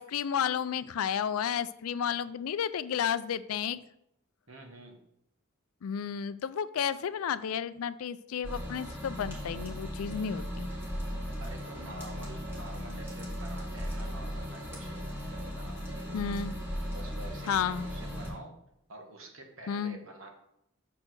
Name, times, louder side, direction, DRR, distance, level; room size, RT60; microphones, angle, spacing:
voice 1, 0.0-3.8 5.8-10.7 16.1-16.5 17.5-17.9 19.7-20.0, left 8 dB, 80° left, 15 dB, 0.4 m, -32 dB
voice 2, 4.5-5.0 11.4-15.0 15.3-16.2 16.9-18.6 18.9-20.3, right 2 dB, 70° right, 3 dB, 1.4 m, -48 dB
sound 1, 8.4-18.3, equal, 10° right, 2.1 m, -37 dB
6.3 x 4.4 x 6.1 m, 0.79 s
head